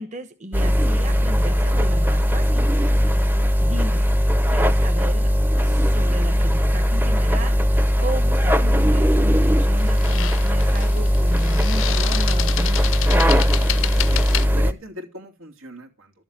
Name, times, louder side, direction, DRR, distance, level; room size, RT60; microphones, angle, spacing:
voice 1, 0.0-2.7 3.6-4.1 4.5-5.3 5.6-13.2, right 1 dB, 35° right, 1.2 m, -35 dB
sound 1, 0.5-14.7, equal, 10° right, 0.6 m, -19 dB
sound 2, 8.1-8.3 9.8-14.5, left 12 dB, 75° left, 0.6 m, -29 dB
voice 2, 13.9-16.1, equal, 90° right, 3.0 m, -40 dB
13.0 x 7.2 x 8.9 m
head